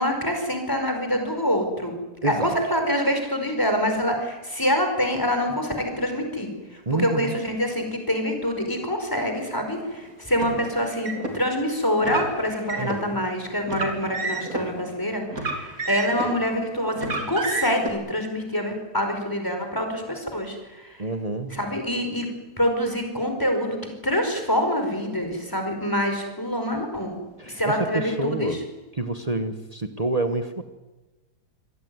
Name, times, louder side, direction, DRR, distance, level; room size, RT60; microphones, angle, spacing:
voice 1, 0.0-1.9 2.2-21.0 21.5-22.3 22.6-27.2 27.4-28.6, equal, 10° left, 5 dB, 5.0 m, -26 dB
voice 2, 2.2-2.6 6.9-7.3 12.8-13.2 21.0-21.6 27.4-28.7 28.9-30.6, right 2 dB, 25° right, 8 dB, 1.2 m, -28 dB
Car, 10.3-11.3 12.0-13.0 13.6-14.6 15.3-16.4 17.0-17.9, right 3 dB, 60° right, 4.0 m, -30 dB
26.0 x 17.0 x 9.5 m, 1.1 s
omnidirectional pair, 1.7 m